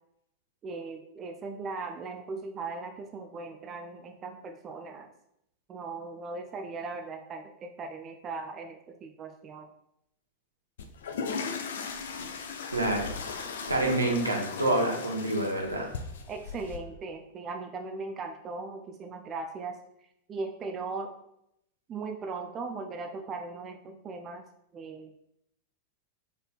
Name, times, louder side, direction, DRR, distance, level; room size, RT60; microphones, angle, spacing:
voice 1, 0.6-5.1 5.7-9.7 16.3-19.8 20.3-21.2 21.9-24.5 24.7-25.1, right 4 dB, 25° right, 5 dB, 0.4 m, -38 dB
sound 1, 10.8-16.8, left 5 dB, 60° left, 0.4 m, -37 dB
voice 2, 12.7-15.9, right 1 dB, 80° right, 0 dB, 0.8 m, -28 dB
3.9 x 3.8 x 2.3 m, 0.77 s
figure-of-eight pair, 90°, 0 cm